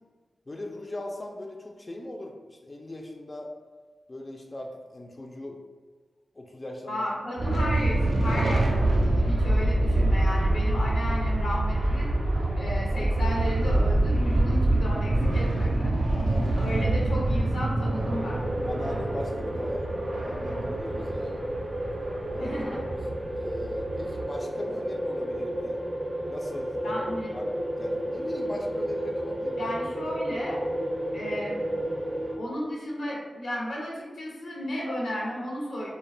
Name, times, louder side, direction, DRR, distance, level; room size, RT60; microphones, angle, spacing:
voice 1, 0.5-3.5 4.1-5.6 6.3-7.1 16.1-16.8 18.7-21.4 22.3-22.5 23.0-25.8 26.3-27.0 27.3-27.5 27.8-29.7, left 1 dB, 35° left, 1 dB, 0.3 m, -39 dB
voice 2, 6.9-12.1 12.6-15.9 16.6-18.4 22.4-22.8 26.8-27.3 29.6-30.6 31.1-31.6 32.4-35.9, equal, 85° left, -4 dB, 0.6 m, -33 dB
sound 1, 7.4-24.2, right 1 dB, 85° right, 0.4 m, -26 dB
sound 2, 18.1-32.4, right 1 dB, 25° right, 0.5 m, -32 dB
2.3 x 2.1 x 2.5 m, 1.5 s
cardioid pair, 45°, 0 cm